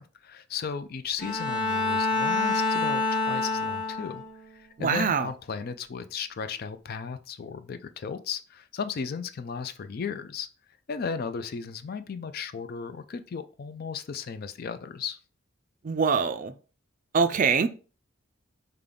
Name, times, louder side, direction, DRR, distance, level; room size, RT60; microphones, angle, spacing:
voice 1, 0.0-4.2 4.5-10.5 10.9-15.2, left 6 dB, 50° left, 0.4 m, -35 dB
Bowed string instrument, 1.2-4.4, left 3 dB, 25° left, 1.1 m, -27 dB
voice 2, 4.8-5.3 15.8-16.5 17.1-17.7, right 5 dB, 40° right, 0.4 m, -23 dB
5.1 x 2.3 x 3.7 m
head